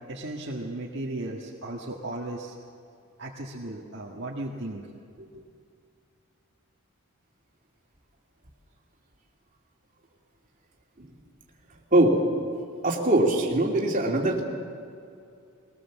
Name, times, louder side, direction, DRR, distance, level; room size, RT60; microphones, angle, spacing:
voice 1, 0.1-2.5 3.2-4.8 5.2-5.4, right 1 dB, 50° right, -3 dB, 1.7 m, -36 dB
voice 2, 12.8-14.4, right 1 dB, 35° right, -1 dB, 2.8 m, -22 dB
22.5 x 19.0 x 7.3 m, 2.4 s
head